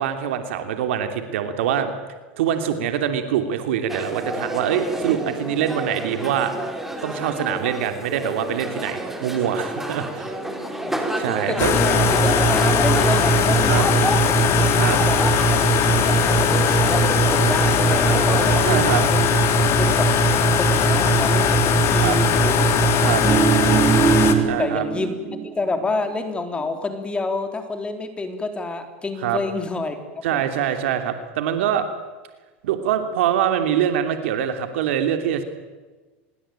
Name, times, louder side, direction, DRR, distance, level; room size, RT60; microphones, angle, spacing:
voice 1, 0.0-1.9 2.4-6.5 7.0-10.3 11.2-11.8 13.7-13.8 14.7-15.0 18.6-19.0 22.0-22.2 23.0-23.2 24.4-24.8 29.2-29.4 30.2-31.8 32.6-35.4, right 9 dB, 75° right, 7 dB, 3.1 m, -24 dB
sound 1, 3.9-18.6, right 1 dB, 5° right, 4.0 m, -29 dB
voice 2, 10.6-11.2 11.5-15.4 15.7-19.3 19.8-20.1 20.5-22.8 23.3-23.6 24.6-30.0 30.3-30.5, left 3 dB, 15° left, 7 dB, 3.5 m, -29 dB
sound 2, 11.6-24.3, left 2 dB, 45° left, 3.7 m, -18 dB
sound 3, 22.9-25.5 25.8-26.0, right 7 dB, 30° right, 2.6 m, -22 dB
26.5 x 22.0 x 9.1 m, 1.3 s
supercardioid pair, 115°, 7 cm